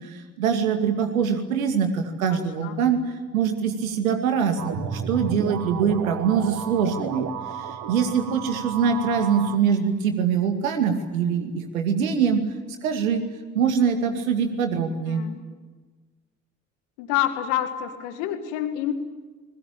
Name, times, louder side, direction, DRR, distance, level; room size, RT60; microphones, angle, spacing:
voice 1, 0.0-3.0 3.3-7.3 7.6-12.4 12.8-13.2 13.5-15.2, right 7 dB, 75° right, 6 dB, 2.5 m, -23 dB
voice 2, 2.3-2.8 8.8-9.2 15.1-15.5 17.0-18.9, left 12 dB, 65° left, 8 dB, 2.2 m, -28 dB
sound 1, 4.6-9.6, right 7 dB, 50° right, 2.0 m, -33 dB
30.0 x 21.5 x 8.9 m, 1.4 s
figure-of-eight pair, 50°, 42 cm